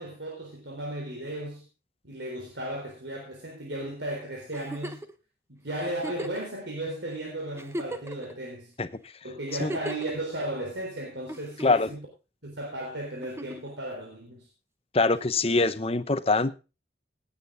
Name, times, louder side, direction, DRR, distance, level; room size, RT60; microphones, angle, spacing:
voice 1, 0.0-1.7 2.0-5.0 5.5-8.7 9.2-12.1 12.4-14.5, right 1 dB, 80° right, 3.9 m, -35 dB
Giggle, 4.5-5.1 6.0-6.5 7.1-7.2 7.5-8.3 9.5-10.1 11.3-11.9 13.2-13.7 15.2-15.3, right 1 dB, 15° right, 0.9 m, -37 dB
voice 2, 14.9-16.5, left 3 dB, 35° left, 0.9 m, -23 dB
18.0 x 8.9 x 3.9 m
head